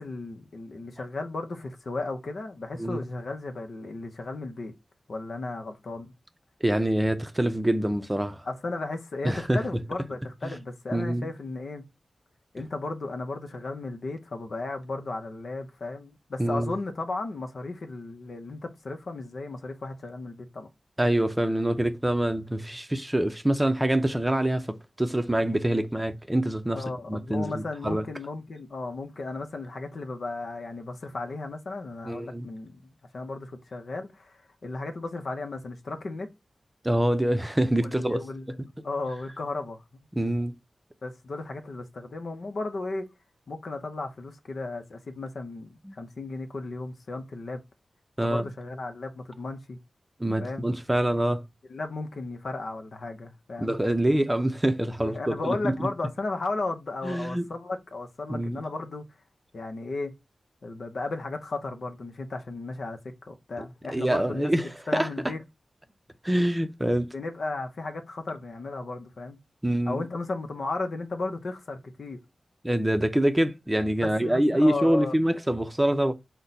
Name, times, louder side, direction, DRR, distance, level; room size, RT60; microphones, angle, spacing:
voice 1, 0.0-4.7 5.1-6.1 8.4-11.8 12.5-20.7 26.7-36.3 37.8-40.0 41.0-43.1 43.5-47.6 48.2-49.8 50.4-50.7 51.7-53.8 55.0-59.0 59.5-60.1 60.6-65.4 67.1-69.4 69.9-72.2 74.0-75.2, left 3 dB, 75° left, 0.7 m, -35 dB
voice 2, 6.6-8.4 9.2-9.6 10.4-10.5 10.9-11.3 16.4-16.7 21.0-26.8 27.1-28.0 32.0-32.5 36.8-38.2 40.1-40.5 45.8-45.9 48.2-48.5 50.2-51.4 53.6-55.9 57.0-57.5 58.3-58.6 63.9-65.1 66.2-67.1 69.6-70.0 72.6-76.1, right 1 dB, 15° right, 0.6 m, -25 dB
4.1 x 2.2 x 3.9 m
cardioid pair, 45°, 0 cm